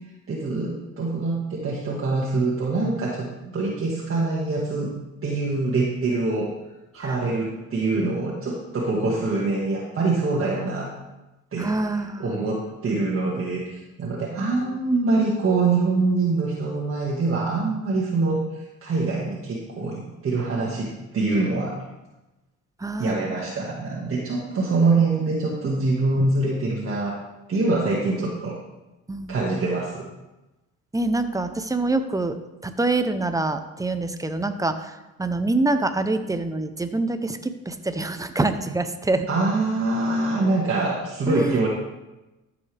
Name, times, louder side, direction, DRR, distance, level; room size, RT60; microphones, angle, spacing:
voice 1, 0.3-4.9 5.2-6.5 6.9-10.9 11.5-11.7 12.2-21.7 23.0-27.2 27.5-28.6 29.3-30.1 39.3-41.7, right 3 dB, 45° right, -4 dB, 1.9 m, -24 dB
voice 2, 11.6-12.4 22.8-23.4 29.1-29.5 30.9-32.4 32.6-34.9 35.2-39.3 41.3-41.6, right 2 dB, 10° right, 9 dB, 0.8 m, -25 dB
13.0 x 7.1 x 3.5 m, 1.0 s
cardioid pair, 90°, 30 cm